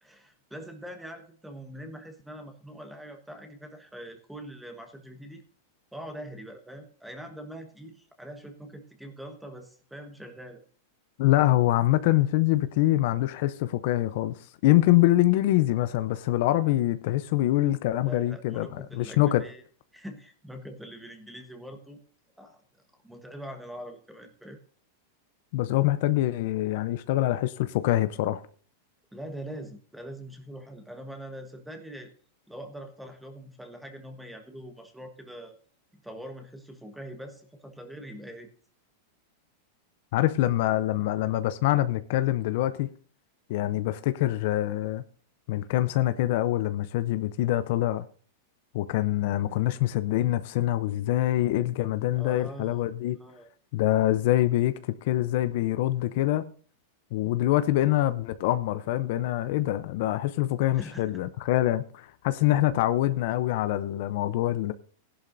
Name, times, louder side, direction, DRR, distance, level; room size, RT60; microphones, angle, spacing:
voice 1, 0.0-5.4 5.9-10.6 18.1-19.6 19.9-22.0 22.4-22.6 23.0-24.6 29.1-32.1 32.5-35.5 36.0-38.5 52.2-52.9 53.2-53.5 60.7-61.2, right 1 dB, 5° right, 1.3 m, -43 dB
voice 2, 11.2-19.4 25.5-28.4 40.1-42.9 43.5-45.0 45.5-48.1 48.7-53.2 53.7-56.5 57.1-64.7, left 15 dB, 60° left, 0.6 m, -25 dB
16.0 x 11.0 x 2.6 m
supercardioid pair, 135°, 0 cm